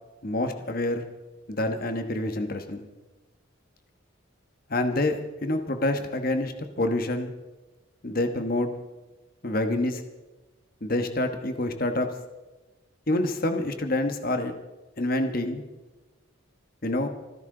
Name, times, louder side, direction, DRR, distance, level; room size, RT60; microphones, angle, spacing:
voice 1, 0.2-1.0 1.5-2.8 4.7-7.3 8.0-8.7 9.4-10.0 10.8-12.1 13.1-14.5 15.0-15.6 16.8-17.1, left 1 dB, 45° left, 7 dB, 1.2 m, -27 dB
27.0 x 10.5 x 3.9 m, 1.1 s
head